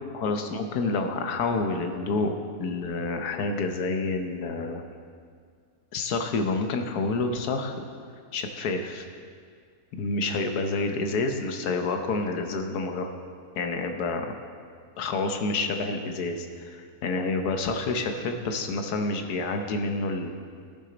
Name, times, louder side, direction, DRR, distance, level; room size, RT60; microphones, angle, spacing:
voice 1, 0.1-4.8 5.9-7.8 8.3-9.0 9.9-13.1 13.6-14.3 15.0-20.3, left 3 dB, 80° left, 5 dB, 1.4 m, -28 dB
14.0 x 6.4 x 3.9 m, 2.1 s
omnidirectional pair, 1.6 m